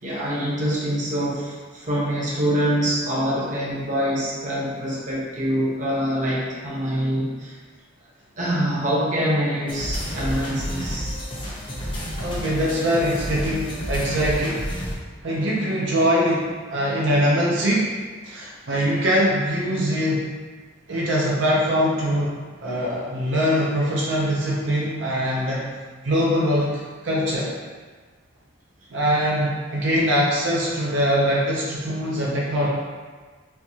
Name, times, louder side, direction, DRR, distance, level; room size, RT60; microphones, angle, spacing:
voice 1, 0.0-7.6 8.4-11.2 27.1-27.2, equal, 40° right, -6 dB, 0.8 m, -25 dB
sound 1, 9.7-14.9, equal, 25° left, 0.7 m, -30 dB
voice 2, 12.2-14.6 15.2-17.9 18.2-20.2 20.9-22.3 22.6-25.6 26.0-27.5 28.9-32.7, equal, 75° right, -5 dB, 0.6 m, -22 dB
4.4 x 2.3 x 2.7 m, 1.5 s
head